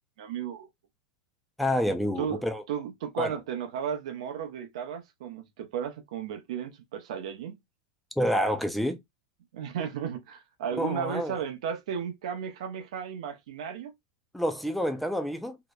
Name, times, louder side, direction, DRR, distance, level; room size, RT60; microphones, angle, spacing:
voice 1, 0.2-0.7 2.2-2.4 2.7-7.6 9.5-13.9, right 8 dB, 75° right, 0.6 m, -34 dB
voice 2, 1.6-2.6 3.2-3.4 8.2-9.0 10.8-11.4 14.3-15.6, equal, ahead, 0.3 m, -28 dB
2.7 x 2.0 x 2.2 m
supercardioid pair, 145°, 3 cm